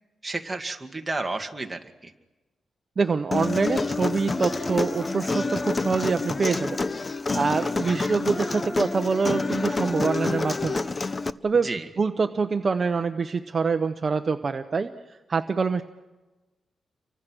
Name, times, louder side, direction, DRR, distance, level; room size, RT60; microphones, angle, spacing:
voice 1, 0.2-2.1 11.5-11.9, right 2 dB, 20° right, 4 dB, 2.0 m, -32 dB
voice 2, 3.0-6.8 7.3-10.8 11.4-11.7 12.0-15.8, right 4 dB, 40° right, 8 dB, 0.9 m, -25 dB
Human voice, 3.3-11.3, left 3 dB, 30° left, 0.7 m, -28 dB
29.5 x 24.5 x 6.3 m, 1.2 s
cardioid pair, 100°, 0 cm